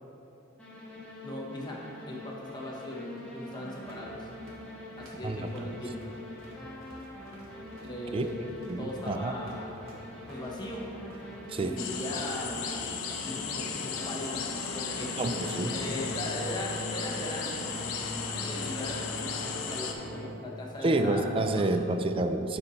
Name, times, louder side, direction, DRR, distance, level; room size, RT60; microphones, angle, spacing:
sound 1, 0.6-20.3, left 1 dB, 5° left, 1.1 m, -43 dB
voice 1, 1.2-4.3 5.0-6.1 7.8-8.4 8.8-9.8 10.3-10.9 11.6-12.9 13.2-15.2 15.7-17.6 18.4-21.8, left 1 dB, 20° left, -2 dB, 1.0 m, -39 dB
sound 2, 3.8-19.8, right 1 dB, 80° right, 1.3 m, -52 dB
voice 2, 8.7-9.3 11.5-11.8 15.2-15.8 20.8-22.6, right 2 dB, 25° right, 7 dB, 0.3 m, -28 dB
sound 3, 11.8-19.9, left 5 dB, 90° left, 0.6 m, -35 dB
9.6 x 4.2 x 4.1 m, 2.9 s
head